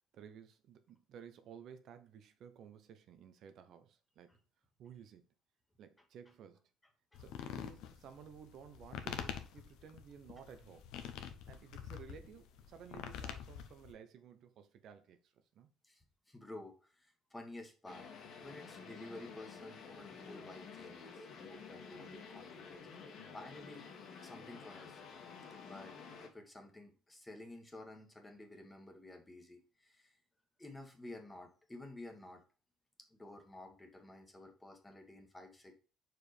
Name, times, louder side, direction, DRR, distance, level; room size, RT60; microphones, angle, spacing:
voice 1, 0.1-4.4 4.8-5.3 5.8-6.6 7.2-10.9 11.5-15.7 23.2-23.4, right 7 dB, 60° right, 0.7 m, -55 dB
sound 1, 7.1-13.9, left 9 dB, 80° left, 0.9 m, -46 dB
voice 2, 7.1-7.5 15.8-18.1 18.4-22.8 23.3-23.9 24.2-25.0 25.7-25.9 26.2-30.2 30.6-32.4 33.1-35.7, left 2 dB, 10° left, 1.3 m, -52 dB
sound 2, 17.9-26.3, left 5 dB, 55° left, 1.6 m, -51 dB
5.0 x 4.7 x 4.8 m
cardioid pair, 135°, 0 cm